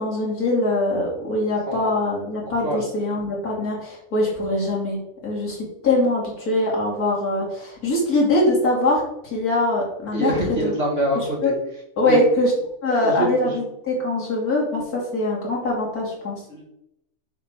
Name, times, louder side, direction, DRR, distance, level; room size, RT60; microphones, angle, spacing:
voice 1, 0.0-5.6 5.8-9.0 9.3-10.6 11.4-11.5 12.0-12.5 12.8-16.4, left 2 dB, 85° left, -3 dB, 3.0 m, -22 dB
voice 2, 1.7-2.0 2.5-2.8 10.1-11.5 12.0-12.2 12.9-13.5 16.5-16.6, equal, 40° right, -2 dB, 2.2 m, -25 dB
6.8 x 6.1 x 3.7 m, 0.79 s
omnidirectional pair, 1.6 m